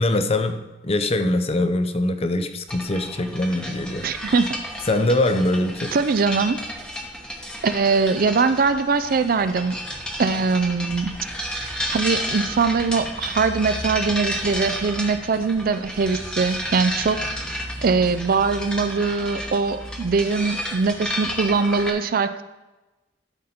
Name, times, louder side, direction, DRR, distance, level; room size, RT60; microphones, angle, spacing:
voice 1, 0.0-4.0 4.9-6.0, left 1 dB, 30° left, 0.6 m, -22 dB
sound 1, 2.7-21.9, equal, 5° left, 1.0 m, -32 dB
voice 2, 4.0-4.6 5.9-6.6 7.6-9.8 10.2-11.1 11.9-17.2 17.8-22.4, right 4 dB, 50° right, 0.4 m, -22 dB
12.5 x 5.0 x 4.3 m
head